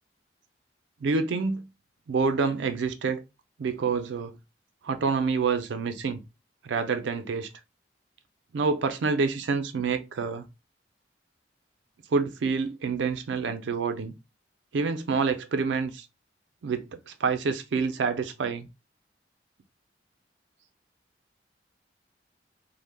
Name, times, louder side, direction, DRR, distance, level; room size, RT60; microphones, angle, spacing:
voice 1, 1.0-1.7 2.1-3.2 3.6-4.4 4.8-6.2 6.6-7.5 8.5-10.4 12.1-14.1 14.7-16.1 16.6-18.7, right 4 dB, 80° right, 0.4 m, -27 dB
2.2 x 2.1 x 3.2 m
head